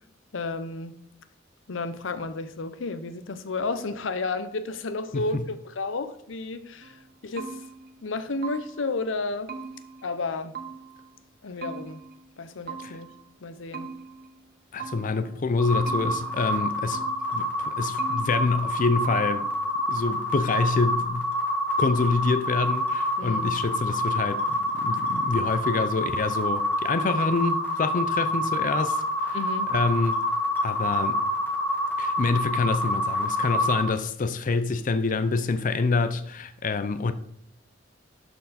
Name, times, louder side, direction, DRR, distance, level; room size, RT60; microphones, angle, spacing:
voice 1, 0.3-1.0 1.7-7.0 7.2-7.6 8.0-9.5 10.0-10.6 11.4-12.0 12.4-13.1 13.4-13.9 23.2-23.5 29.3-29.7, left 3 dB, 90° left, 0.7 m, -32 dB
sound 1, 6.8-9.0 9.5-11.1 11.6-13.3 13.7-15.4 15.9-17.5 18.0-18.8 19.0-19.6, right 5 dB, 55° right, 0.9 m, -41 dB
voice 2, 14.7-17.1 17.3-19.5 19.9-21.3 21.8-29.4 29.7-30.2 30.6-31.2 32.0-37.1, left 4 dB, 45° left, 0.5 m, -26 dB
sound 2, 15.6-33.9, left 1 dB, 10° left, 1.7 m, -27 dB
11.5 x 4.6 x 4.2 m
head